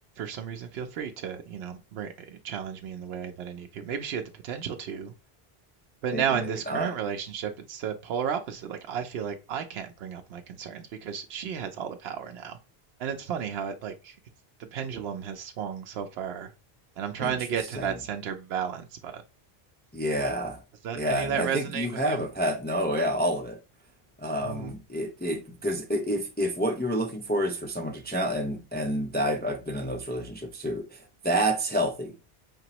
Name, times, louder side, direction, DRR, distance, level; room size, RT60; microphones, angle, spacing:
voice 1, 0.2-5.1 6.0-12.6 13.0-14.2 14.7-16.5 17.0-19.2 20.8-22.2 24.4-24.7, right 8 dB, 80° right, 0.8 m, -33 dB
voice 2, 6.1-6.9 17.2-17.3 17.8-17.9 19.9-20.6 21.0-23.6 24.2-32.1, equal, 10° left, 0.5 m, -29 dB
5.2 x 2.9 x 2.8 m
omnidirectional pair, 1.0 m